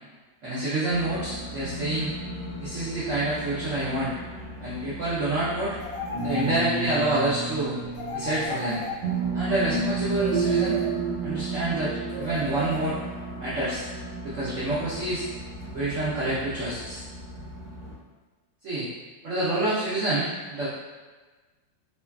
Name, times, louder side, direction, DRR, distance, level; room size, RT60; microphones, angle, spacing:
voice 1, 0.4-2.1 2.6-4.1 4.6-5.8 6.2-7.8 8.1-8.8 9.3-10.8 11.2-13.0 13.4-13.9 14.2-15.3 15.7-17.0 18.6-18.9 19.2-20.7, right 2 dB, 90° right, -10 dB, 0.6 m, -27 dB
sound 1, 0.9-17.9, right 3 dB, 70° right, 1.2 m, -33 dB
sound 2, 5.8-7.1 7.9-9.5 10.2-11.3 12.1-13.3, left 2 dB, 70° left, 1.2 m, -36 dB
3.2 x 2.2 x 2.2 m, 1.3 s
omnidirectional pair, 2.1 m